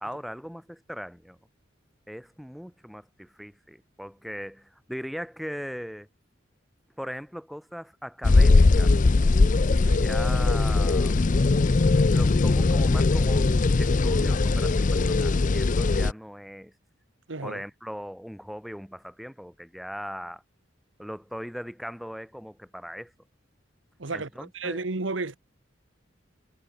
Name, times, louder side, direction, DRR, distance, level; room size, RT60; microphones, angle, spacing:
voice 1, 0.0-1.4 2.1-6.1 7.0-9.0 10.0-11.2 12.0-13.5 13.8-16.7 17.4-20.4 21.0-23.1 24.1-24.8, equal, ahead, 1.7 m, -39 dB
sound 1, 8.2-16.1, left 3 dB, 45° left, 0.5 m, -20 dB
voice 2, 9.7-10.0 17.3-17.6 24.0-25.4, right 3 dB, 90° right, 1.3 m, -33 dB
head